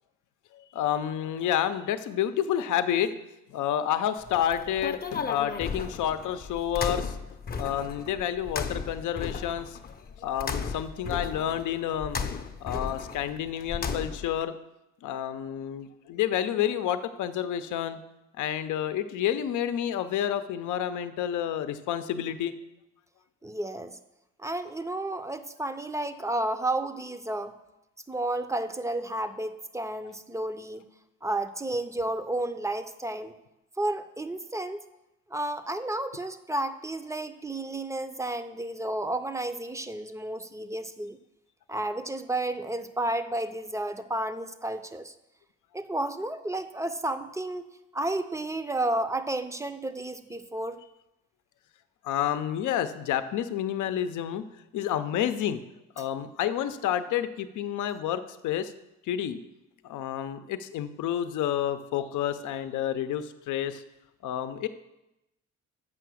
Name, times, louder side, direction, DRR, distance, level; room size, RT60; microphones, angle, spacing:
voice 1, 0.5-3.1 3.5-7.2 7.6-9.8 10.2-12.2 12.6-14.5 15.0-18.0 18.4-22.5 52.0-54.4 54.7-55.6 56.0-58.7 59.0-59.4 59.8-63.8 64.2-64.7, left 10 dB, 80° left, 10 dB, 0.7 m, -29 dB
sound 1, 4.2-14.4, left 5 dB, 30° left, 0.7 m, -35 dB
voice 2, 23.4-24.0 24.4-27.6 28.1-30.8 31.2-33.3 33.8-34.8 35.3-41.2 41.7-45.1 45.7-47.6 47.9-50.8, right 1 dB, 10° right, 10 dB, 0.5 m, -32 dB
7.6 x 5.8 x 6.3 m, 0.92 s
cardioid pair, 90°, 30 cm